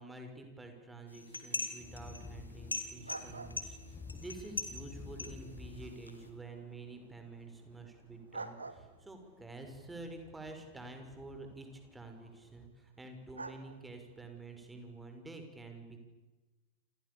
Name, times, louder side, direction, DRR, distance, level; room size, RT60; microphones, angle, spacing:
voice 1, 0.0-16.0, right 2 dB, 10° right, 5 dB, 6.1 m, -49 dB
sound 1, 1.1-6.3, left 3 dB, 80° left, 3.1 m, -43 dB
sound 2, 1.8-12.7, left 4 dB, 15° left, 1.7 m, -54 dB
sound 3, 3.0-15.2, right 3 dB, 80° right, 1.9 m, -53 dB
29.0 x 28.5 x 7.2 m, 1.1 s
figure-of-eight pair, 90°, 0 cm